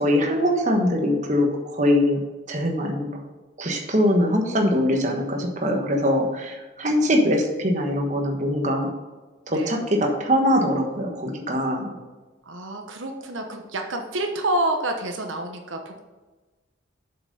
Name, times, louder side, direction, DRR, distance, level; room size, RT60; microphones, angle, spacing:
voice 1, 0.0-2.2 2.5-3.1 3.6-8.9 9.5-11.9, equal, 40° right, 1 dB, 1.3 m, -22 dB
voice 2, 12.4-16.0, right 1 dB, 80° right, 3 dB, 1.0 m, -28 dB
7.5 x 6.0 x 5.4 m, 1.2 s
head